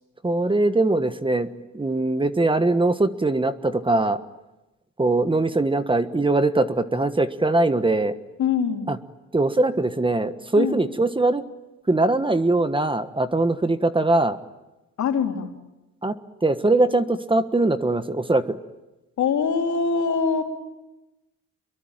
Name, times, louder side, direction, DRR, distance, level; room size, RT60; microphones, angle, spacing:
voice 1, 0.2-1.5 1.7-4.2 5.0-8.1 8.9-9.0 9.3-11.4 11.9-14.4 16.0-16.1 16.4-18.6, right 2 dB, 15° right, 10 dB, 1.4 m, -21 dB
voice 2, 8.4-8.9 10.6-10.8 15.0-15.5 19.2-20.4, left 6 dB, 70° left, 3 dB, 3.6 m, -23 dB
27.5 x 23.0 x 9.0 m, 1.0 s
cardioid pair, 90°, 30 cm